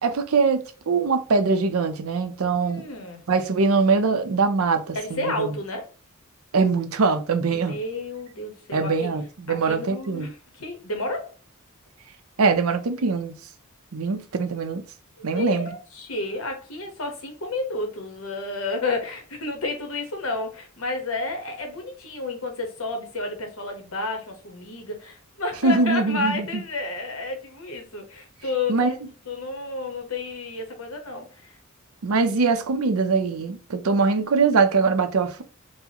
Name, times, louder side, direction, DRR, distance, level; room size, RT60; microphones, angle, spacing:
voice 1, 0.0-2.8 3.3-5.5 6.5-7.8 8.7-10.3 12.4-13.3 13.9-14.8 15.2-15.7 25.6-26.6 28.7-28.9 32.0-35.4, right 4 dB, 80° right, 0.5 m, -22 dB
voice 2, 2.6-3.2 4.9-5.9 7.5-9.1 9.5-11.3 15.3-29.0 29.3-31.5, left 2 dB, 70° left, 1.0 m, -31 dB
4.6 x 2.1 x 2.8 m
head